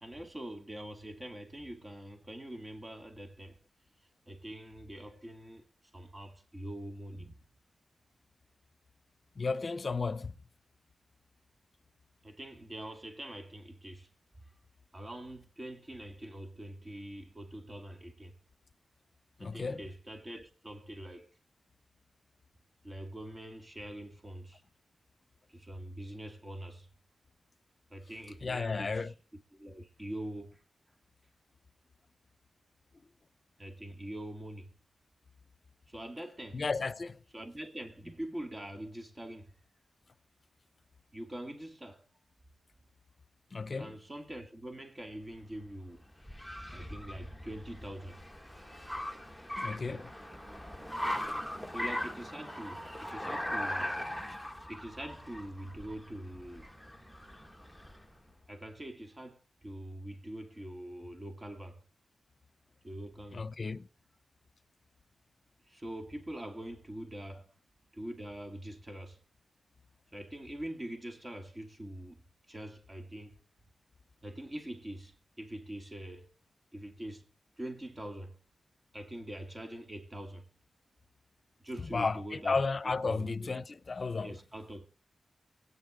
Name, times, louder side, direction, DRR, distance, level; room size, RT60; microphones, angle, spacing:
voice 1, 0.0-3.6 4.3-5.7 5.9-7.4 12.2-14.1 14.9-18.4 19.4-21.3 22.8-24.6 25.5-26.9 27.9-29.1 29.5-30.6 33.6-34.7 35.9-36.6 37.3-39.6 41.1-42.1 43.8-46.0 46.7-48.2 49.9-50.1 51.7-54.0 54.7-56.7 58.5-61.8 62.8-63.5 65.7-67.5 67.9-69.2 70.1-72.2 72.5-73.4 74.2-76.3 76.7-77.3 77.6-78.4 78.9-80.5 81.6-83.5 84.2-84.8, right 1 dB, 30° right, 2.3 m, -44 dB
voice 2, 9.4-10.3 19.4-19.8 28.4-29.1 36.5-37.2 43.5-44.0 49.6-50.1 63.3-63.9 81.9-84.3, left 4 dB, 50° left, 0.7 m, -33 dB
Car, 45.2-58.2, left 1 dB, 5° right, 1.8 m, -40 dB
22.5 x 9.4 x 3.8 m
cardioid pair, 50°, 0 cm